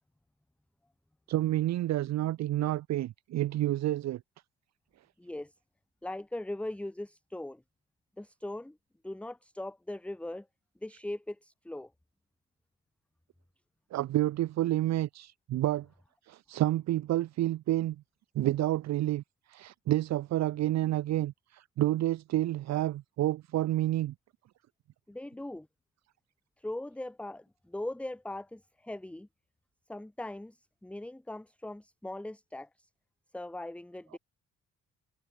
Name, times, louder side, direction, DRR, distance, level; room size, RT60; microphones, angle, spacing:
voice 1, 1.3-4.2 13.9-15.9 16.3-18.0 18.3-19.2 19.5-24.1, right 14 dB, 60° right, 0.6 m, -29 dB
voice 2, 5.2-5.5 6.0-7.6 8.2-8.8 9.0-10.5 10.8-11.9 25.1-25.7 26.6-29.3 29.9-32.9 33.3-34.2, left 1 dB, 5° left, 0.8 m, -40 dB
cardioid pair, 90°, 30 cm